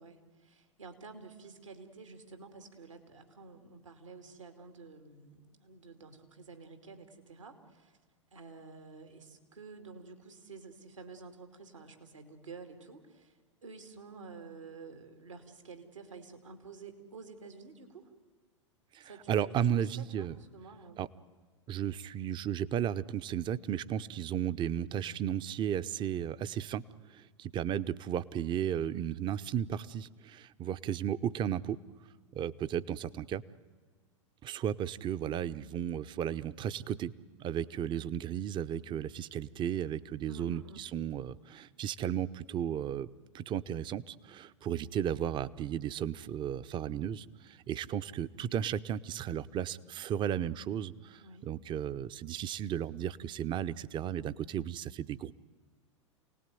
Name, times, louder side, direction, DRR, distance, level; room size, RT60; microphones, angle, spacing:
voice 1, 0.0-8.0 8.3-18.1 19.0-21.0 40.3-40.8 51.2-51.5, right 4 dB, 85° right, 6 dB, 2.8 m, -50 dB
voice 2, 18.9-20.4 21.0-21.1 21.7-26.8 27.1-31.8 32.3-33.4 34.4-37.1 37.4-43.1 43.3-55.3, right 9 dB, 30° right, 15 dB, 0.7 m, -34 dB
28.5 x 18.5 x 9.3 m, 1.4 s
figure-of-eight pair, 90°, 16 cm